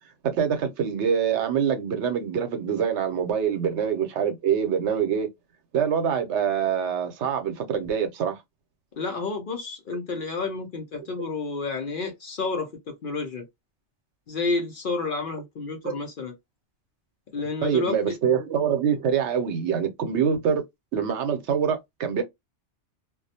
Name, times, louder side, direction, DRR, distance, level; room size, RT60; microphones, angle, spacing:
voice 1, 0.2-5.3 5.7-8.4 15.8-16.0 17.6-20.6 20.9-22.2, right 7 dB, 75° right, 0.9 m, -25 dB
voice 2, 9.0-13.5 14.3-16.3 17.3-18.2, left 3 dB, 55° left, 0.7 m, -30 dB
2.4 x 2.1 x 2.7 m
omnidirectional pair, 1.2 m